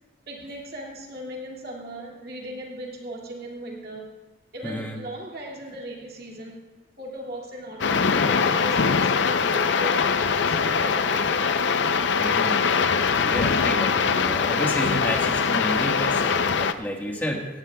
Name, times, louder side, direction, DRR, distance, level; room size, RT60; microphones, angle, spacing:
voice 1, 0.3-4.1 4.5-6.7 7.0-11.5, right 1 dB, 50° right, -2 dB, 2.2 m, -38 dB
voice 2, 4.6-5.0 12.2-12.6 13.2-17.5, equal, 10° left, 0 dB, 1.4 m, -30 dB
sound 1, 7.8-16.7, left 5 dB, 65° left, 0.5 m, -22 dB
16.5 x 16.5 x 2.3 m, 1.2 s
head